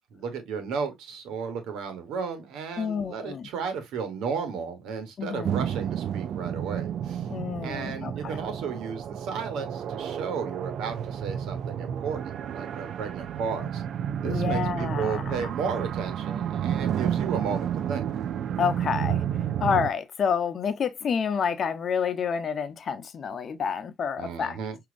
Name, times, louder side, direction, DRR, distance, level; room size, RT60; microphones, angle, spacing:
voice 1, 0.1-7.3 7.6-13.8 14.2-18.1 24.2-24.8, right 6 dB, 90° right, 1.2 m, -34 dB
voice 2, 2.8-3.5 5.2-5.7 7.3-8.4 14.2-15.5 18.6-19.2 19.6-24.6, left 6 dB, 55° left, 0.7 m, -29 dB
sound 1, 5.4-19.9, right 9 dB, 70° right, 0.3 m, -31 dB
6.1 x 2.8 x 2.5 m
cardioid pair, 90°, 0 cm